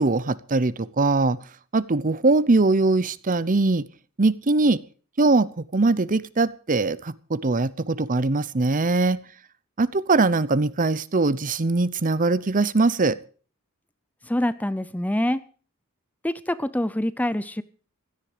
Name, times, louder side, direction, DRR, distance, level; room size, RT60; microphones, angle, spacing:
voice 1, 0.0-1.4 1.7-3.9 4.2-4.8 5.2-5.5 5.7-9.2 9.8-13.2, right 3 dB, 40° right, 17 dB, 0.8 m, -21 dB
voice 2, 14.2-15.4 16.2-17.6, left 1 dB, 5° left, 15 dB, 0.6 m, -25 dB
16.5 x 13.0 x 5.0 m, 0.40 s
head